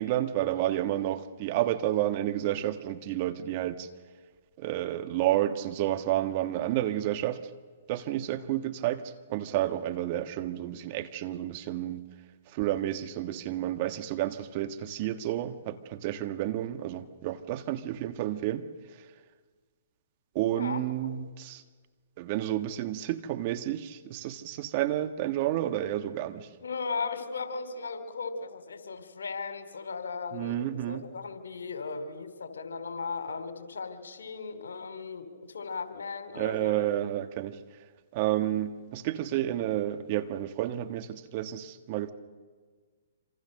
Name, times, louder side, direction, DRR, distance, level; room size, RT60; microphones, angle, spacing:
voice 1, 0.0-3.9 4.6-7.4 7.9-9.0 9.3-12.0 12.5-18.6 20.3-21.6 22.2-26.5 30.3-31.0 36.3-37.6 38.1-42.1, right 13 dB, 40° right, 9 dB, 1.4 m, -30 dB
voice 2, 20.5-21.1 26.6-36.9, left 4 dB, 80° left, 8 dB, 3.2 m, -37 dB
26.5 x 26.5 x 6.6 m, 1.5 s
hypercardioid pair, 135°, 0 cm